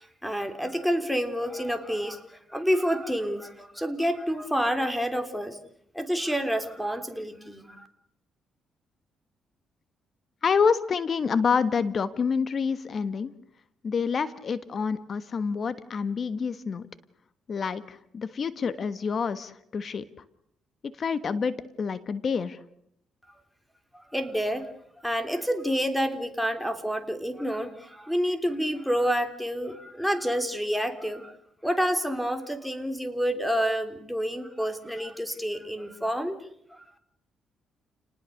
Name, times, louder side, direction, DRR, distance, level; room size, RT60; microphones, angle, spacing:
voice 1, 0.0-5.6 5.9-7.9 23.9-31.4 31.6-36.9, equal, ahead, 9 dB, 3.4 m, -29 dB
voice 2, 10.4-13.3 13.8-16.9 17.5-20.1 21.0-22.6, left 5 dB, 45° left, 14 dB, 1.4 m, -27 dB
29.5 x 19.5 x 6.5 m, 0.73 s
cardioid pair, 90°, 0 cm